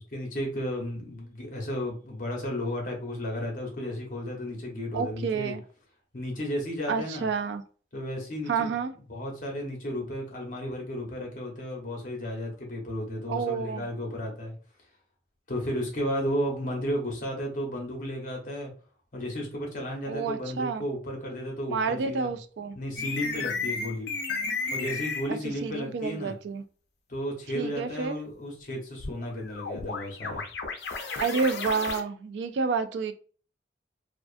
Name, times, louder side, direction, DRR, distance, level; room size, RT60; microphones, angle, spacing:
voice 1, 0.1-5.5 6.1-7.3 7.9-8.7 9.1-14.5 15.5-18.7 19.1-22.3 22.7-24.1 24.7-26.4 27.1-30.4, equal, 45° left, 0.8 m, -33 dB
voice 2, 4.9-5.6 6.9-7.6 8.5-8.9 13.3-13.8 20.1-20.8 21.7-22.8 25.3-26.6 27.5-28.2 31.2-33.1, right 5 dB, 80° right, 0.3 m, -29 dB
sound 1, 23.0-25.3 29.0-32.0, left 4 dB, 70° left, 0.5 m, -33 dB
2.5 x 2.4 x 2.4 m
head